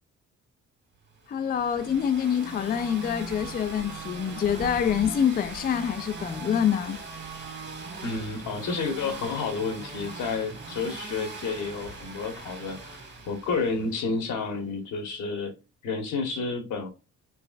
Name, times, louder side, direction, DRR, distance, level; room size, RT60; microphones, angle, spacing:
voice 1, 1.3-7.0, left 8 dB, 30° left, 0.4 m, -26 dB
sound 1, 1.3-14.2, right 3 dB, 35° right, 1.9 m, -40 dB
sound 2, 1.7-7.1, right 4 dB, 85° right, 1.6 m, -49 dB
voice 2, 8.0-13.0 13.3-15.5 15.8-16.9, left 4 dB, 80° left, 1.4 m, -30 dB
4.6 x 3.2 x 2.4 m
cardioid pair, 90°, 30 cm